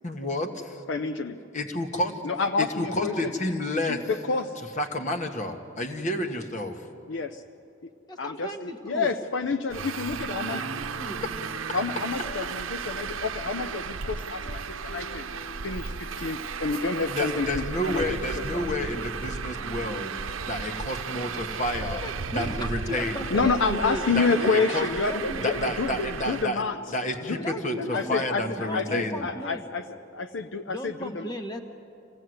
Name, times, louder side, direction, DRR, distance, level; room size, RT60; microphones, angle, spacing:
voice 1, 0.0-0.8 1.5-2.1 2.6-4.0 4.8-6.9 17.1-22.0 22.3-23.2 24.1-24.9 25.4-26.6 26.9-29.2, left 1 dB, 40° left, 5 dB, 1.5 m, -30 dB
voice 2, 0.9-1.4 2.2-3.3 3.9-4.6 7.1-7.4 8.2-10.6 11.7-15.2 15.6-18.2 18.5-18.7 23.3-26.8 27.3-29.9 30.1-31.3, left 4 dB, 70° left, 8 dB, 0.6 m, -29 dB
voice 3, 8.1-9.1 10.3-11.2 21.9-24.0 24.4-25.7 27.4-29.7 30.7-31.6, equal, 20° left, 6 dB, 1.2 m, -36 dB
Traffic noise roadway noise, 9.7-26.4, right 5 dB, 90° right, 0.7 m, -35 dB
sound 1, 10.6-29.4, left 1 dB, 90° left, 2.1 m, -46 dB
26.0 x 17.0 x 7.9 m, 2.6 s
head